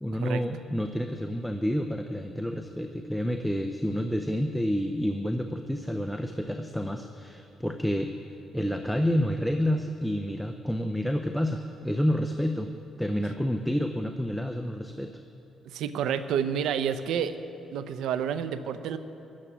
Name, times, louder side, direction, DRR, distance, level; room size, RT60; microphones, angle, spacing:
voice 1, 0.0-8.1 8.5-12.7 13.0-15.1, equal, ahead, 6 dB, 0.6 m, -29 dB
voice 2, 15.6-17.4 17.7-19.0, right 8 dB, 85° right, 12 dB, 0.6 m, -29 dB
14.0 x 7.5 x 10.0 m, 2.8 s
cardioid pair, 90°, 0 cm